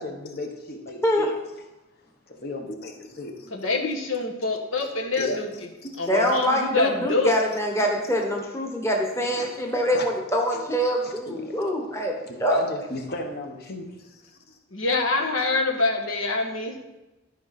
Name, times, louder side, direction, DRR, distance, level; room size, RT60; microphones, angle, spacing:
voice 1, 0.0-1.3 2.3-3.5 5.1-6.1 9.3-9.5 9.9-10.1 10.5-10.6 10.9-11.6 12.2-14.6, left 1 dB, 50° left, 3 dB, 1.2 m, -35 dB
voice 2, 3.5-5.5 6.0-7.3 14.7-16.8, left 3 dB, 90° left, 3 dB, 1.3 m, -25 dB
voice 3, 6.1-12.1 12.4-12.6, equal, 15° left, 0 dB, 1.2 m, -24 dB
13.0 x 5.2 x 4.1 m, 1.0 s
head